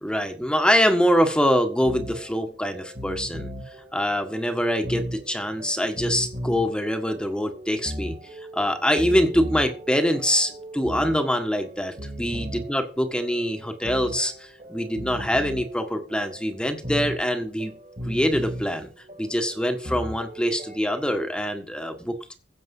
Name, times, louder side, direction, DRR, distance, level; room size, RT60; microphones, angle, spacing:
voice 1, 0.0-3.5 3.9-8.1 8.5-12.8 13.1-17.7 18.1-18.9 19.2-22.2, equal, 5° left, 7 dB, 1.5 m, -24 dB
sound 1, 1.6-20.8, equal, 40° right, 2.4 m, -37 dB
16.0 x 7.3 x 5.5 m, 0.38 s
head